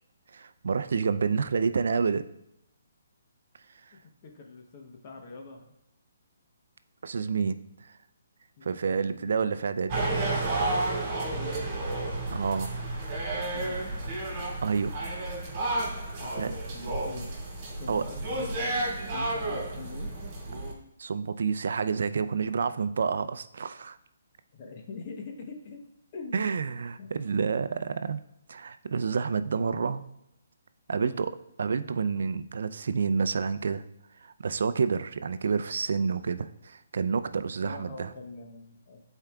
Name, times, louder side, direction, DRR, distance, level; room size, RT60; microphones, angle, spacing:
voice 1, 0.3-2.2 7.0-7.6 8.6-10.1 12.3-12.8 14.6-15.0 16.4-16.5 17.9-18.0 21.0-24.0 26.3-28.2 28.5-30.0 30.9-31.3 31.6-33.8 34.2-38.1, right 5 dB, 65° right, 12 dB, 0.4 m, -29 dB
voice 2, 3.9-5.7 8.6-9.5 11.1-12.0 13.5-14.2 16.2-17.3 17.8-18.7 19.1-20.1 24.5-25.8 26.1-26.4 27.0-27.1 30.9-31.3 37.6-39.1, left 4 dB, 35° left, 2 dB, 0.9 m, -44 dB
sound 1, 9.9-20.7, right 2 dB, 30° right, 2.6 m, -31 dB
11.5 x 4.5 x 2.3 m, 0.82 s
hypercardioid pair, 160°, 0 cm